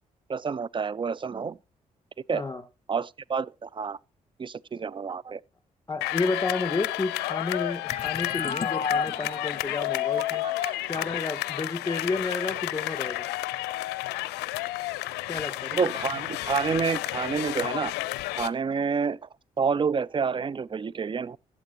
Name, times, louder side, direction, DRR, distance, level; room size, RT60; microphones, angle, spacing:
voice 1, 0.3-1.6 2.3-2.4 2.9-4.0 4.4-5.4 10.1-10.8 15.7-17.9 18.4-19.3 19.6-21.4, right 5 dB, 30° right, 0.4 m, -29 dB
voice 2, 5.9-10.4 10.9-13.3 15.3-15.9, left 3 dB, 20° left, 2.5 m, -31 dB
sound 1, 6.0-18.5, left 18 dB, 75° left, 0.5 m, -31 dB
sound 2, 7.9-11.3, left 5 dB, 35° left, 0.7 m, -33 dB
15.0 x 8.3 x 2.8 m
hypercardioid pair, 45°, 17 cm